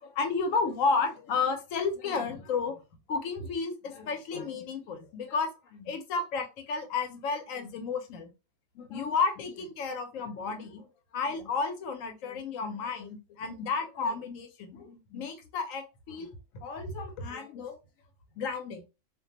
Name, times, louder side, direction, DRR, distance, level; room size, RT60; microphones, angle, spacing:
voice 1, 0.0-2.8 3.1-8.3 8.7-10.9 11.1-16.3 16.5-17.8 18.4-18.8, left 4 dB, 85° left, 1.0 m, -32 dB
2.4 x 2.2 x 2.7 m
omnidirectional pair, 1.4 m